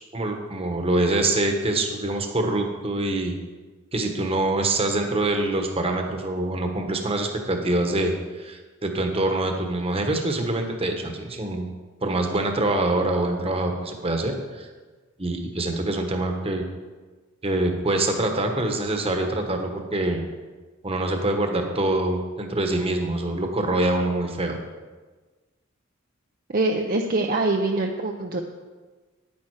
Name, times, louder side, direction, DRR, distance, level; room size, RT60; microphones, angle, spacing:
voice 1, 0.1-3.3 3.9-11.7 12.0-14.7 15.2-16.6 17.4-20.2 20.8-24.6, right 2 dB, 30° right, 4 dB, 1.2 m, -25 dB
voice 2, 26.5-28.4, right 2 dB, 45° right, 2 dB, 0.6 m, -24 dB
10.0 x 8.8 x 4.8 m, 1.3 s
head